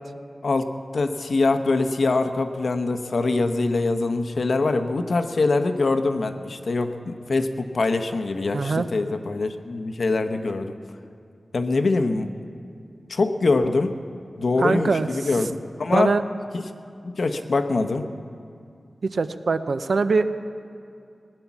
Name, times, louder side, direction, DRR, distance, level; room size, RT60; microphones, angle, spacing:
voice 1, 0.4-10.7 11.5-12.3 13.1-14.0 14.4-16.1 16.5-16.6 17.0-18.1, left 3 dB, 70° left, 8 dB, 0.8 m, -23 dB
voice 2, 8.5-8.9 14.6-15.3 15.9-16.2 19.0-20.3, right 4 dB, 75° right, 10 dB, 0.6 m, -23 dB
18.5 x 9.9 x 7.2 m, 2.4 s
wide cardioid pair, 90°, 0 cm